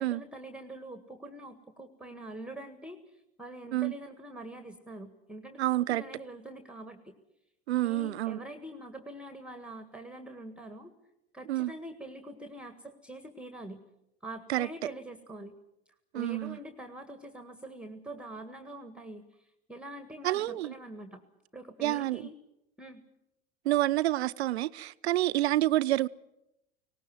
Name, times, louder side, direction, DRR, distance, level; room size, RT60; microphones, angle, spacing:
voice 1, 0.0-7.1 7.8-10.9 11.3-13.8 14.2-15.5 16.1-21.2 21.5-22.4 22.8-23.0, right 1 dB, 5° right, 1.7 m, -44 dB
voice 2, 5.6-6.0 7.7-8.4 11.5-11.7 14.5-14.7 16.1-16.6 20.2-20.7 21.8-22.3 23.6-26.1, right 15 dB, 75° right, 0.7 m, -28 dB
19.0 x 18.0 x 9.4 m
hypercardioid pair, 80°, 33 cm